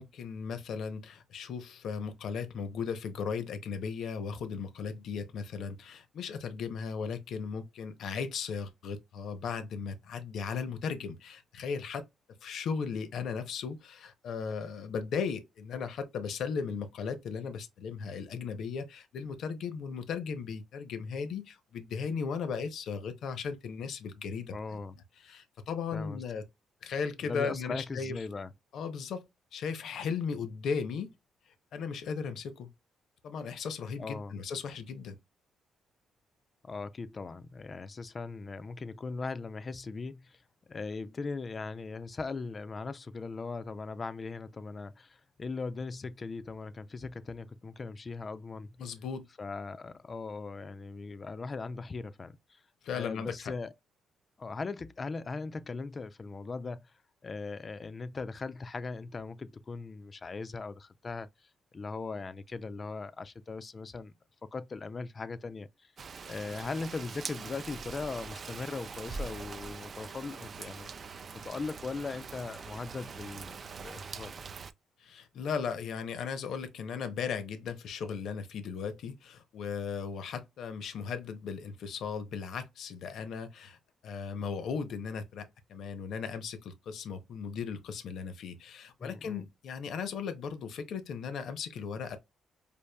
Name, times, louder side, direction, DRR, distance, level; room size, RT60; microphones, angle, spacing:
voice 1, 0.0-12.0 12.4-24.8 25.2-26.4 26.8-28.2 28.7-29.3 29.5-31.1 31.7-32.7 33.2-35.2 48.8-49.2 52.8-53.5 75.0-83.8 84.0-92.2, left 6 dB, 70° left, 0.7 m, -36 dB
voice 2, 24.5-25.0 25.9-26.2 27.2-28.5 34.0-34.3 36.6-48.7 49.4-52.6 52.9-53.7 54.4-56.9 57.2-64.1 64.5-65.9 66.3-70.9 71.4-74.4 89.0-89.5, left 4 dB, 35° left, 0.4 m, -39 dB
Rain, 66.0-74.7, right 5 dB, 45° right, 0.4 m, -43 dB
5.2 x 2.4 x 2.2 m
cardioid pair, 90°, 0 cm